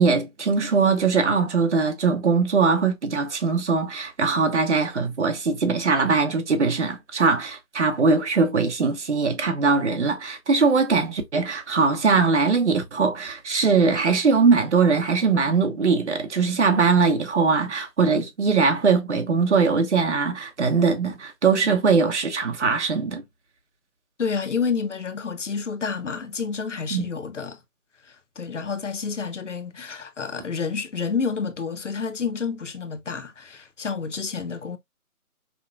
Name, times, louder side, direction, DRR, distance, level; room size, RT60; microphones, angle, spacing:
voice 1, 0.0-23.2 26.9-27.1, right 4 dB, 50° right, 1.0 m, -21 dB
voice 2, 24.2-27.6 28.0-34.8, left 5 dB, 55° left, 0.7 m, -29 dB
5.6 x 2.2 x 2.6 m
hypercardioid pair, 180°, 44 cm